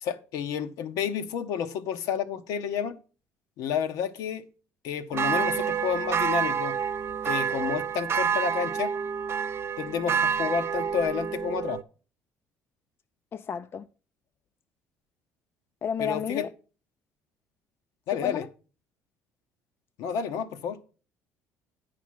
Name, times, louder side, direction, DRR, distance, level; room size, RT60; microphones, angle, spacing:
voice 1, 0.0-3.0 3.6-4.5 4.8-6.8 7.2-8.9 9.8-11.8 16.0-16.5 18.1-18.4 20.0-20.8, left 7 dB, 75° left, 0.8 m, -30 dB
sound 1, 5.1-11.8, right 7 dB, 45° right, 0.4 m, -28 dB
voice 2, 13.3-13.9 15.8-16.5 18.2-18.5, left 7 dB, 40° left, 0.4 m, -31 dB
9.2 x 4.9 x 5.7 m
supercardioid pair, 70°, 6 cm